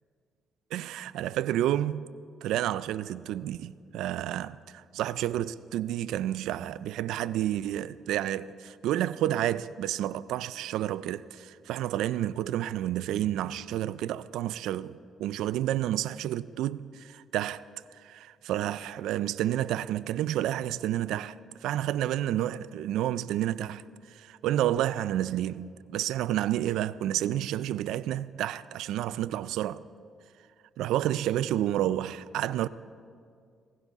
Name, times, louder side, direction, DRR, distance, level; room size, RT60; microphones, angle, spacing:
voice 1, 0.7-2.1 2.4-17.6 18.0-21.3 21.6-23.8 24.1-29.8 30.8-32.7, right 12 dB, 90° right, 0.3 m, -30 dB
18.0 x 16.0 x 3.6 m
cardioid pair, 90°, 0 cm